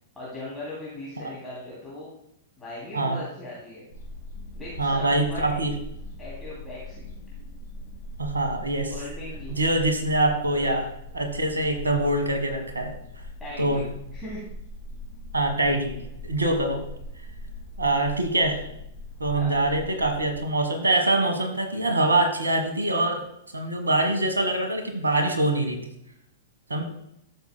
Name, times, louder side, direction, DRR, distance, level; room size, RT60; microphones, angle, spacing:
voice 1, 0.1-2.1 2.6-3.8 4.5-5.6 6.2-7.1 8.9-9.6 10.6-10.8 13.4-13.8 14.1-14.4 19.3-19.6, left 1 dB, 10° left, -9 dB, 2.8 m, -38 dB
sound 1, 3.9-20.4, left 1 dB, 60° left, 3.0 m, -40 dB
voice 2, 4.8-5.7 8.2-8.9 9.5-10.8 11.1-12.9 13.6-13.8 15.3-16.0 16.2-16.8 17.8-18.6 19.2-23.2 23.5-25.8 26.7-26.8, right 2 dB, 75° right, 4 dB, 1.3 m, -24 dB
13.0 x 6.6 x 2.2 m, 0.77 s
figure-of-eight pair, 100°, 0 cm